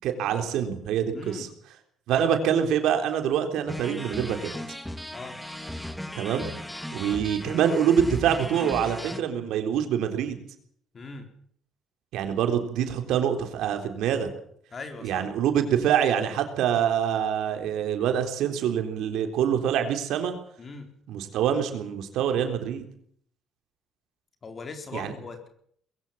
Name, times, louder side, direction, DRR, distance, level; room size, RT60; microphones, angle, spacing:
voice 1, 0.0-1.5 2.1-4.5 6.2-6.5 6.9-10.4 12.1-14.3 15.0-20.4 21.1-22.8 24.9-25.1, right 8 dB, 80° right, 6 dB, 3.8 m, -25 dB
voice 2, 1.1-1.5 5.1-5.4 10.9-11.3 14.7-15.3 20.6-20.9 24.4-25.5, left 4 dB, 40° left, 6 dB, 4.2 m, -39 dB
sound 1, 3.7-9.2, equal, 5° left, 2.0 m, -37 dB
21.5 x 16.5 x 7.3 m, 0.64 s
cardioid pair, 105°, 0 cm